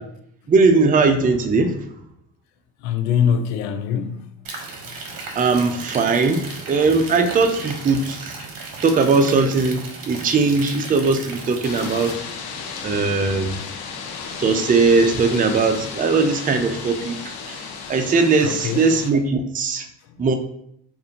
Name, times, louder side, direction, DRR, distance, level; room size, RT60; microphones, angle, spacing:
voice 1, 0.5-1.8 5.4-8.4 8.8-12.1 12.8-13.5 14.4-17.6 17.9-19.9 20.2-20.4, right 4 dB, 20° right, 6 dB, 0.4 m, -19 dB
voice 2, 2.8-4.3 5.1-5.2 18.4-18.9, left 8 dB, 85° left, 7 dB, 0.7 m, -23 dB
sound 1, 4.4-12.1, right 3 dB, 45° right, 1.1 m, -35 dB
sound 2, 11.6-19.1, left 5 dB, 50° left, 0.8 m, -34 dB
4.8 x 2.6 x 2.8 m, 0.73 s
supercardioid pair, 75°, 47 cm